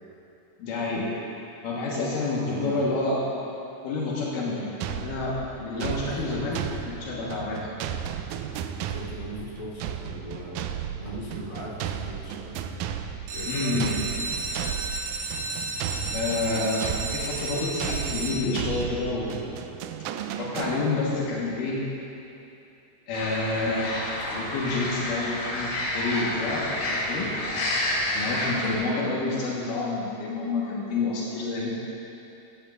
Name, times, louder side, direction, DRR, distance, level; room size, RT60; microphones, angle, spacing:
voice 1, 0.6-1.1 1.6-3.2 3.8-6.6 6.9-7.7 13.4-13.9 16.1-19.4 20.4-21.8 23.1-23.9 24.2-27.3 28.1-31.7, left 3 dB, 75° left, -5 dB, 2.9 m, -28 dB
voice 2, 2.3-2.9 5.8-6.4 8.8-10.6 11.0-12.6 13.3-14.1 17.8-17.9, equal, 30° left, -10 dB, 3.3 m, -39 dB
sound 1, 4.8-21.3, right 9 dB, 80° right, 1.8 m, -34 dB
sound 2, 13.2-18.9 19.5-20.0 20.4-20.5 20.7-20.8 21.3-21.4, right 2 dB, 65° right, 2.1 m, -33 dB
sound 3, 23.1-28.7, left 1 dB, 55° left, 2.7 m, -29 dB
16.0 x 13.5 x 2.4 m, 2.9 s
omnidirectional pair, 3.8 m